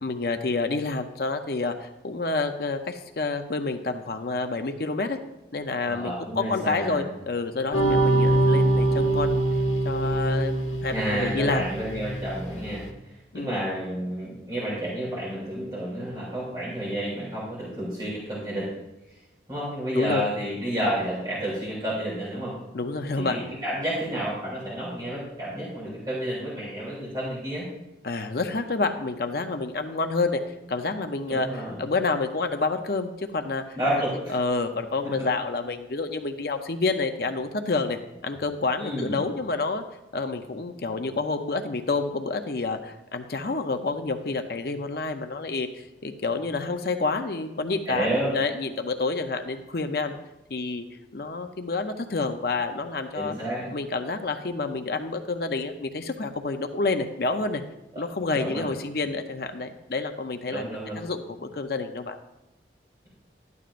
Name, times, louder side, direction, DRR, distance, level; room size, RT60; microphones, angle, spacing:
voice 1, 0.0-5.2 5.5-9.4 9.8-11.6 13.3-13.6 19.9-20.3 22.7-23.4 28.0-30.4 30.7-33.6 34.3-39.8 40.1-50.1 50.5-50.8 51.1-53.3 53.7-57.6 58.0-60.7 61.0-62.2, left 3 dB, 55° left, 7 dB, 0.6 m, -28 dB
voice 2, 5.8-7.0 10.9-18.7 19.1-19.2 19.5-22.5 23.2-27.7 31.3-31.8 33.7-34.3 38.8-39.2 47.9-48.3 53.1-53.7 57.9-58.0 58.3-58.6 60.5-61.0, right 1 dB, 20° right, -8 dB, 3.3 m, -30 dB
sound 1, 7.7-12.5, right 1 dB, 90° left, 1.3 m, -23 dB
12.5 x 10.5 x 2.5 m, 0.97 s
head